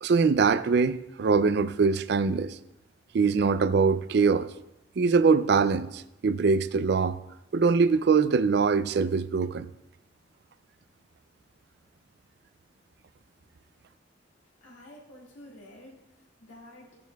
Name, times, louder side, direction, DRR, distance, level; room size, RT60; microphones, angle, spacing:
voice 1, 0.0-2.6 3.1-4.5 5.0-7.2 7.5-9.7, right 5 dB, 60° right, 0.4 m, -23 dB
voice 2, 14.6-17.1, left 1 dB, 90° left, 2.3 m, -50 dB
15.5 x 8.9 x 2.3 m
head